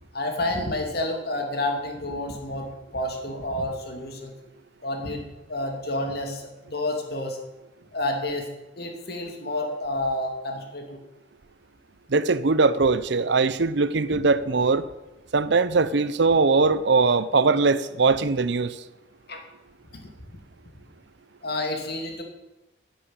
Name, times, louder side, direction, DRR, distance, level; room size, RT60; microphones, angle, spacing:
voice 1, 0.1-4.3 4.8-5.2 5.5-7.4 7.9-8.5 8.8-11.0 19.3-19.4 19.9-20.3 21.4-22.2, left 1 dB, 50° left, 2.7 m, -29 dB
voice 2, 12.1-14.9 15.3-18.8, right 4 dB, 60° right, 0.6 m, -21 dB
10.0 x 10.0 x 8.9 m
head